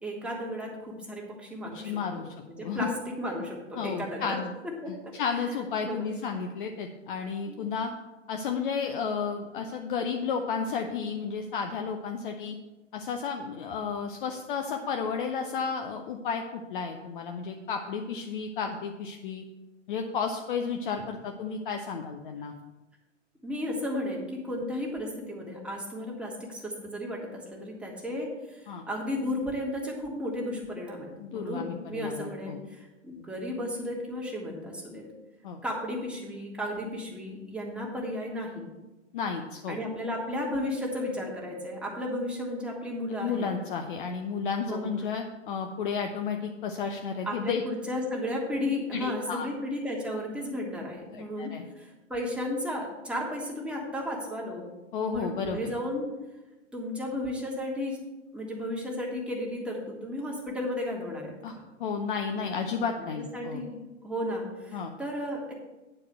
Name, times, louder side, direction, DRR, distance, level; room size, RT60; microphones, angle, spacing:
voice 1, 0.0-4.4 4.6-5.4 5.9-6.1 7.5-7.6 21.0-21.1 23.4-35.0 35.6-38.6 39.7-43.5 44.7-44.9 47.2-54.7 55.1-56.1 56.7-58.0 58.3-61.6 62.4-62.7 63.0-65.5, left 1 dB, 5° right, -3 dB, 1.8 m, -34 dB
voice 2, 1.7-2.3 2.6-2.9 3.8-4.5 5.1-7.9 8.3-12.6 12.9-19.4 19.9-22.5 28.7-28.8 31.2-32.6 35.4-35.6 39.1-39.8 43.2-47.6 48.9-49.5 51.1-51.6 54.9-55.6 61.4-61.5 61.8-63.6 64.7-64.9, left 6 dB, 45° left, 4 dB, 0.8 m, -32 dB
9.7 x 4.7 x 7.6 m, 1.1 s
figure-of-eight pair, 110°, 37 cm